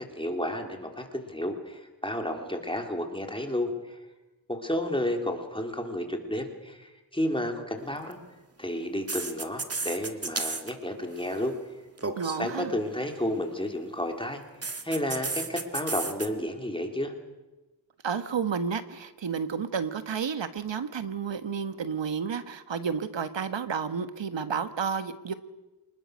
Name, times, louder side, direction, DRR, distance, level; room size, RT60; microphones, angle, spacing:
voice 1, 0.0-4.0 4.5-8.2 8.6-11.6 12.4-14.4 14.8-17.1, left 1 dB, 10° left, 3 dB, 3.5 m, -31 dB
sound 1, 7.9-8.1 9.1-10.7 11.0-11.4 12.0-12.4 14.6-16.3, right 3 dB, 30° right, 2.0 m, -33 dB
voice 2, 12.2-12.7 18.0-25.3, right 6 dB, 65° right, 11 dB, 1.6 m, -31 dB
26.5 x 20.0 x 6.5 m, 1.1 s
cardioid pair, 75°, 47 cm